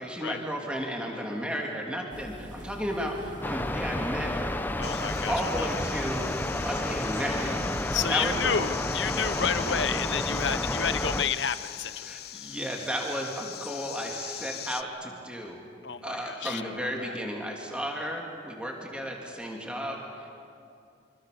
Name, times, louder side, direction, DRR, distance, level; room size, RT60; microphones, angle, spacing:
voice 1, 0.0-4.5 5.3-6.2 6.6-7.6 8.1-8.4 9.2-9.5 12.0-15.6 16.0-20.3, equal, 5° right, 0 dB, 3.2 m, -33 dB
sound 1, 2.1-9.6, equal, 40° right, 2.5 m, -48 dB
sound 2, 3.4-11.2, left 1 dB, 10° left, 0.8 m, -31 dB
voice 2, 4.8-5.7 7.9-12.2 15.8-17.2, left 7 dB, 75° left, 12 dB, 1.0 m, -31 dB
sound 3, 4.8-14.8, left 12 dB, 55° left, 0.7 m, -41 dB
26.0 x 26.0 x 7.0 m, 2.5 s
head